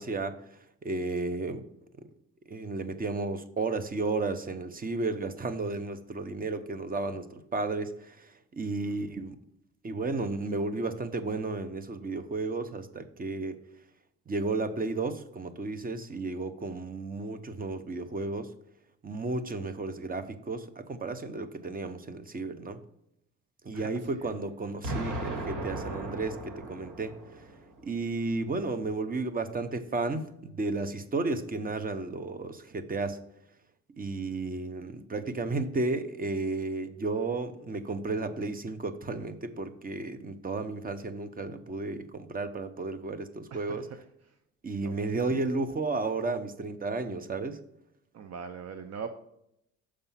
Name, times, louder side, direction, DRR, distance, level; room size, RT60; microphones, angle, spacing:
voice 1, 0.0-1.6 2.5-9.4 9.8-13.6 14.3-18.5 19.0-22.8 23.6-27.1 27.8-33.2 34.0-43.8 44.6-47.6, right 3 dB, 30° right, 10 dB, 0.9 m, -33 dB
voice 2, 23.7-24.3 43.5-44.0 44.2-44.4 44.8-45.2 48.1-49.1, right 6 dB, 55° right, 8 dB, 0.7 m, -42 dB
Explosion, 24.8-27.8, right 1 dB, 80° right, 2.0 m, -36 dB
6.8 x 5.0 x 5.7 m, 0.78 s
cardioid pair, 90°, 30 cm